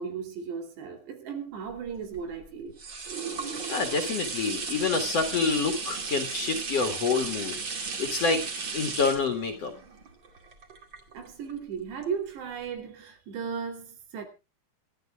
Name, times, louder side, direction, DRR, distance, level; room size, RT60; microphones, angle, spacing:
voice 1, 0.0-2.8 11.1-14.2, right 6 dB, 90° right, 5.2 m, -36 dB
sound 1, 1.8-11.5 12.0-12.1, right 4 dB, 35° right, 2.3 m, -35 dB
voice 2, 3.7-7.6 8.0-8.4 8.7-9.7, left 4 dB, 50° left, 2.3 m, -27 dB
26.5 x 12.0 x 2.4 m
omnidirectional pair, 4.8 m